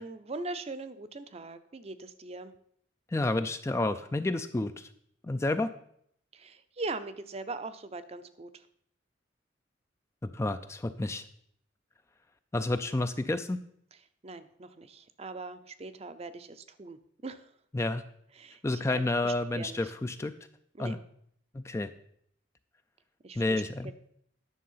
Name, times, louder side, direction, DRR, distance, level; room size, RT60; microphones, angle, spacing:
voice 1, 0.0-2.5 6.3-8.6 14.2-17.5 18.4-19.9 20.7-20.9 23.2-23.9, right 3 dB, 35° right, 11 dB, 0.6 m, -41 dB
voice 2, 3.1-4.9 5.2-5.7 10.3-11.2 12.5-13.6 17.7-18.0 18.6-20.3 20.8-21.0 21.5-21.9 23.4-23.9, left 2 dB, 15° left, 10 dB, 0.3 m, -30 dB
10.0 x 6.5 x 5.5 m, 0.68 s
head